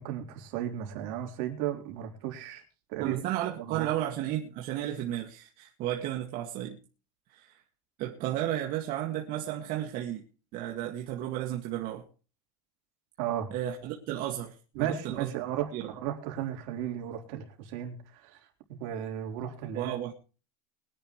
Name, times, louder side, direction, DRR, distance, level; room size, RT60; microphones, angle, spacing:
voice 1, 0.0-2.6 2.9-3.2 3.6-4.0 13.2-13.5 14.7-18.4 18.7-20.0, right 10 dB, 70° right, 2 dB, 4.0 m, -35 dB
voice 2, 3.0-6.8 7.3-7.6 8.0-10.2 10.5-12.0 13.5-15.3 15.7-15.9 19.7-20.1, right 12 dB, 55° right, 2 dB, 2.0 m, -33 dB
23.0 x 10.5 x 3.2 m, 0.36 s
supercardioid pair, 135°, 18 cm